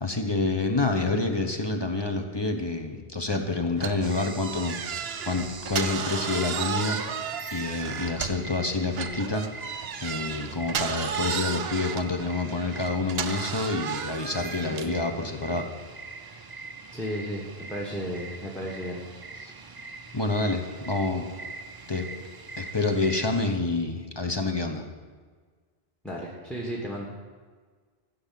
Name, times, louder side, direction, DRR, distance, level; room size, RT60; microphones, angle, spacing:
voice 1, 0.0-7.0 7.2-15.7 19.4-19.5 20.1-21.3 21.9-22.1 22.6-24.8, left 3 dB, 25° left, 4 dB, 1.0 m, -28 dB
sound 1, 3.8-8.5 8.9-15.0, right 7 dB, 75° right, 0.9 m, -33 dB
sound 2, 4.0-23.5, right 3 dB, 30° right, 0.5 m, -42 dB
voice 2, 16.9-19.0 26.0-27.1, equal, ahead, -2 dB, 1.4 m, -34 dB
14.0 x 5.6 x 7.5 m, 1.5 s
omnidirectional pair, 1.1 m